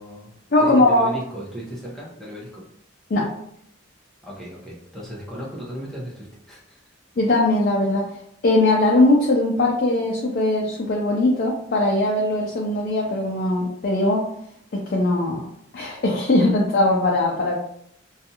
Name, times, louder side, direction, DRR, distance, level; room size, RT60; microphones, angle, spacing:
voice 1, 0.0-2.7 4.2-6.8, right 1 dB, ahead, -7 dB, 0.8 m, -35 dB
voice 2, 0.5-1.1 3.1-3.3 7.2-8.2 8.4-14.3 14.7-15.4 15.7-17.5, left 2 dB, 55° left, -2 dB, 0.4 m, -20 dB
2.5 x 2.3 x 2.7 m, 0.72 s
head